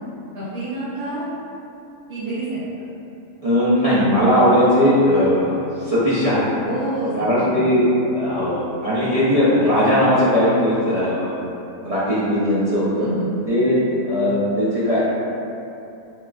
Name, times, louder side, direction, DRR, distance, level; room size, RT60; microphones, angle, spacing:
voice 1, 0.3-1.2 2.1-2.6 6.6-7.7 13.0-13.3, right 2 dB, 55° right, -12 dB, 1.1 m, -27 dB
voice 2, 3.4-6.4 7.1-11.3 11.8-13.1 13.5-13.8 14.1-15.0, equal, 40° right, -11 dB, 0.5 m, -18 dB
6.3 x 2.4 x 2.3 m, 2.8 s
omnidirectional pair, 1.5 m